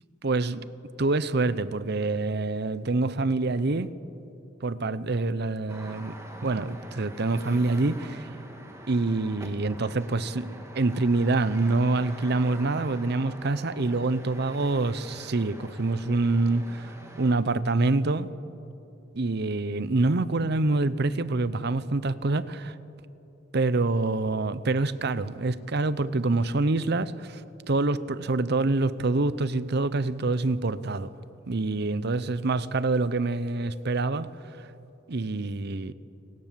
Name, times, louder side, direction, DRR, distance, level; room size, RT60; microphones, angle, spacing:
voice 1, 0.2-0.7 1.0-3.9 4.6-6.1 6.4-8.3 8.9-18.3 19.1-22.8 23.5-27.4 27.7-31.1 31.5-34.3 35.1-35.9, right 2 dB, 60° right, 0.8 m, -26 dB
sound 1, 5.7-17.4, right 1 dB, 15° right, 2.7 m, -45 dB
29.5 x 19.5 x 7.6 m
head